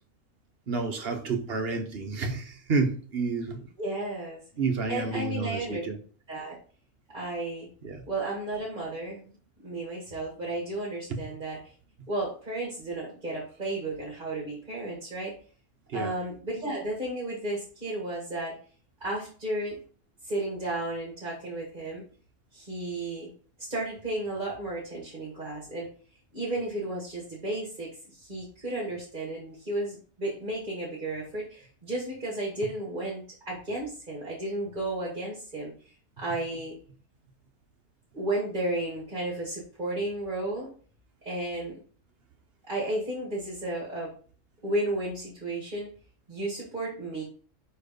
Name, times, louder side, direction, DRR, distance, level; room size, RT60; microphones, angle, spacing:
voice 1, 0.7-3.7 4.6-6.0 7.8-8.0 11.1-11.3 15.9-16.1, right 4 dB, 50° right, 1.0 m, -30 dB
voice 2, 3.8-4.4 4.9-5.8 6.3-6.6 7.1-7.7 8.1-9.3 9.6-11.7 12.1-15.3 15.9-18.5 19.0-19.8 20.2-22.0 22.5-23.3 23.6-25.9 26.3-35.7 36.2-36.8 38.1-40.7 41.2-41.7 42.6-44.1 44.6-45.9 46.3-47.2, right 1 dB, 35° right, 1.9 m, -33 dB
5.3 x 4.5 x 5.1 m
omnidirectional pair, 1.5 m